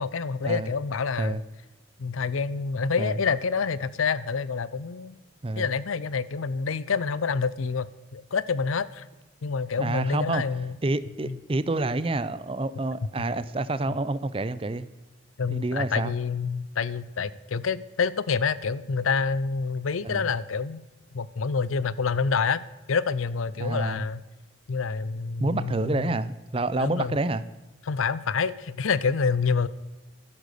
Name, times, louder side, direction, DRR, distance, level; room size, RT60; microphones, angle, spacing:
voice 1, 0.0-1.4 2.0-5.1 5.6-9.0 9.4-10.7 11.2-11.4 15.4-20.8 21.1-22.6 22.9-24.2 24.7-26.2 26.7-27.2 27.9-29.7, left 5 dB, 90° left, 0.6 m, -27 dB
voice 2, 9.8-10.4 10.8-14.9 15.5-16.1 20.0-20.3 23.6-24.1 25.4-27.4, right 2 dB, 25° right, 0.5 m, -28 dB
13.0 x 10.0 x 6.7 m
head